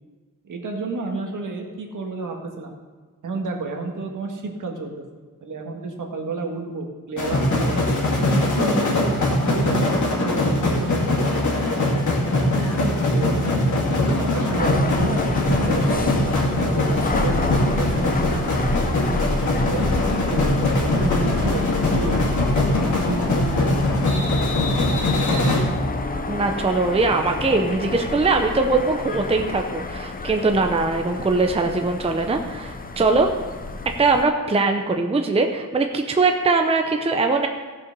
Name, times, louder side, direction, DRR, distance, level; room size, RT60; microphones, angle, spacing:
voice 1, 0.4-2.7 3.2-5.0 5.4-7.7 8.2-11.4 12.2-13.4 13.8-18.5 19.5-22.2 22.7-23.8 24.1-24.6, right 3 dB, 65° right, 2 dB, 1.6 m, -31 dB
sound 1, 7.2-26.2, left 1 dB, 55° left, 2.3 m, -22 dB
sound 2, 14.6-34.2, left 3 dB, 25° left, 0.6 m, -29 dB
voice 2, 26.3-33.3 34.0-37.5, right 3 dB, 15° right, 4 dB, 0.6 m, -21 dB
16.0 x 5.7 x 5.3 m, 1.4 s
wide cardioid pair, 160°, 34 cm